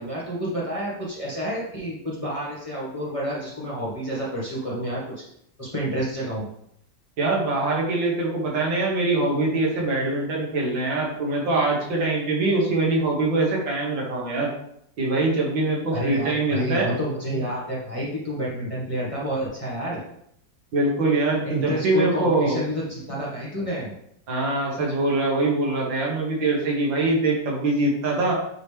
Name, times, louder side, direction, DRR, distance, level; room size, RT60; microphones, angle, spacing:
voice 1, 0.0-5.2 5.6-6.5 15.9-20.0 21.4-23.9, equal, 20° left, -6 dB, 1.6 m, -29 dB
voice 2, 7.2-14.5 15.0-16.9 20.7-22.6 24.3-28.4, right 2 dB, 80° right, -3 dB, 2.2 m, -23 dB
9.1 x 3.1 x 3.4 m, 0.73 s
omnidirectional pair, 2.0 m